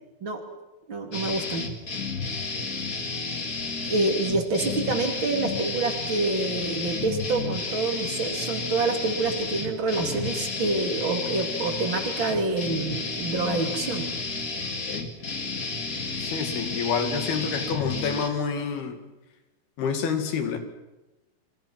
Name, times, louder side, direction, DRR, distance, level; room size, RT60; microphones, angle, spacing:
voice 1, 0.9-1.6 3.8-14.1, right 3 dB, 35° right, 4 dB, 3.0 m, -27 dB
sound 1, 1.1-18.3, left 4 dB, 30° left, 1.9 m, -32 dB
voice 2, 16.2-19.0 19.8-20.6, left 6 dB, 90° left, 6 dB, 4.3 m, -28 dB
28.5 x 24.5 x 6.0 m, 1.0 s
omnidirectional pair, 4.3 m